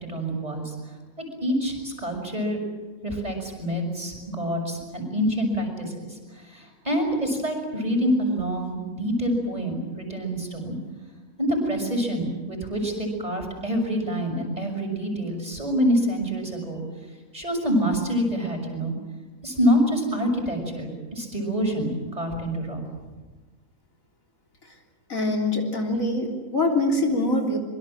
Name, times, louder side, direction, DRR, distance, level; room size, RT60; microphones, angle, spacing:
voice 1, 0.1-0.7 1.2-2.6 3.0-10.8 11.4-16.8 17.3-18.9 19.4-22.8, equal, 25° right, 2 dB, 6.2 m, -26 dB
voice 2, 25.1-27.6, left 2 dB, 75° left, 1 dB, 3.9 m, -24 dB
25.0 x 23.5 x 7.6 m, 1.3 s
omnidirectional pair, 1.4 m